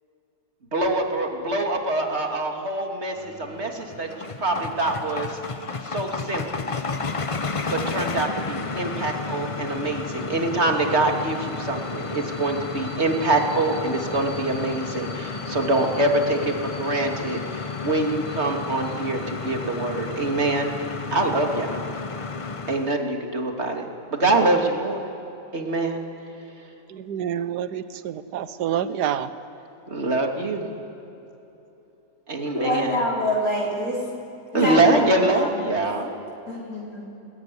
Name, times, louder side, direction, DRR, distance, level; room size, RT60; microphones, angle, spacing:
voice 1, 0.7-5.3 5.8-6.4 7.7-20.7 21.1-21.9 22.7-25.0 25.5-26.0 29.9-30.7 32.3-33.0 34.5-36.1, right 2 dB, 40° right, 2 dB, 2.8 m, -24 dB
sound 1, 3.1-20.4, left 1 dB, 10° right, 6.0 m, -46 dB
sound 2, 3.6-23.0, left 4 dB, 30° left, 0.6 m, -32 dB
voice 2, 26.9-29.3, right 9 dB, 85° right, 12 dB, 1.5 m, -28 dB
voice 3, 32.4-34.0 34.5-35.7 36.5-37.0, left 1 dB, 60° left, -3 dB, 4.9 m, -26 dB
28.5 x 21.0 x 9.8 m, 3.0 s
omnidirectional pair, 1.7 m